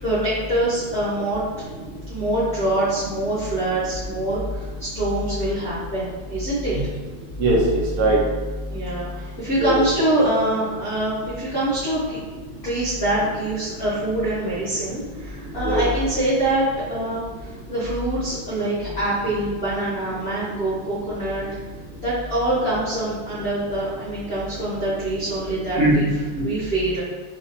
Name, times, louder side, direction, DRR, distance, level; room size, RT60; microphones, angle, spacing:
voice 1, 0.0-1.4 2.1-6.7 8.7-12.2 12.6-16.6 16.9-21.5 22.0-26.0 26.4-27.0, right 1 dB, 50° left, -10 dB, 0.7 m, -25 dB
voice 2, 7.4-8.2 9.6-9.8 15.6-15.9 25.8-26.4, right 1 dB, 65° right, -5 dB, 0.8 m, -20 dB
3.1 x 3.1 x 2.6 m, 1.3 s
omnidirectional pair, 2.3 m